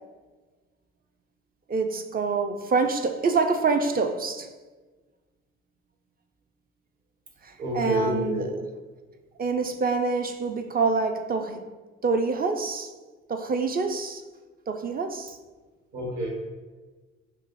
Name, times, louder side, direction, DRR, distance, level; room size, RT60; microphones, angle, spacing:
voice 1, 1.7-4.5 7.4-8.6 9.4-11.7 12.0-12.9 13.3-14.2 14.7-15.4, right 4 dB, 25° right, 0.5 m, -26 dB
voice 2, 7.6-8.5 15.9-16.3, equal, 55° right, 1.4 m, -28 dB
5.8 x 2.0 x 2.9 m
hypercardioid pair, 50°, 34 cm